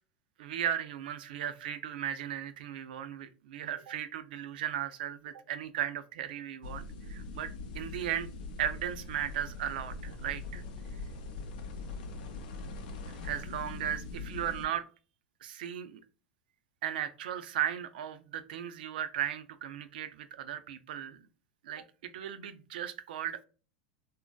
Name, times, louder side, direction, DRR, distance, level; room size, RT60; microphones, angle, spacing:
voice 1, 0.4-8.3 8.6-10.6 13.1-14.9 15.4-16.0 16.8-21.2 21.6-23.4, right 10 dB, 75° right, 11 dB, 0.4 m, -36 dB
sound 1, 6.6-14.7, left 3 dB, 75° left, 0.5 m, -42 dB
2.6 x 2.1 x 2.2 m, 0.36 s
hypercardioid pair, 115°, 5 cm